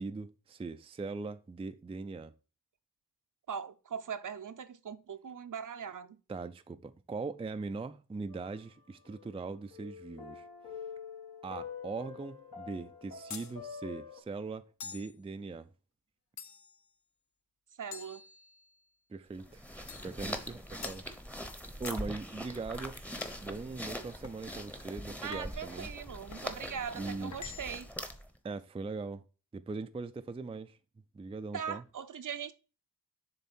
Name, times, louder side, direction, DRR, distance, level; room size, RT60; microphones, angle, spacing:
voice 1, 0.0-2.3 6.3-10.5 11.4-15.7 19.1-19.6 20.0-21.0 21.8-23.0 23.4-25.9 26.9-27.3 28.4-29.2 29.5-30.8 31.1-31.8, right 3 dB, 15° right, 0.4 m, -40 dB
voice 2, 3.5-6.2 17.8-18.2 25.2-27.9 31.5-32.5, right 7 dB, 60° right, 0.7 m, -40 dB
sound 1, 8.3-9.4 9.7-14.2, left 6 dB, 70° left, 1.5 m, -46 dB
sound 2, 13.3-13.6 14.8-15.2 16.4-16.8 17.9-18.8 19.9-20.2 20.8-21.1 21.9-22.1 23.2-23.5 24.2-24.5 25.3-25.7 26.3-26.5 27.3-27.9, left 6 dB, 50° left, 0.7 m, -46 dB
sound 3, 19.3-28.4, equal, 5° left, 0.9 m, -42 dB
6.9 x 3.6 x 4.3 m
wide cardioid pair, 80°, 36 cm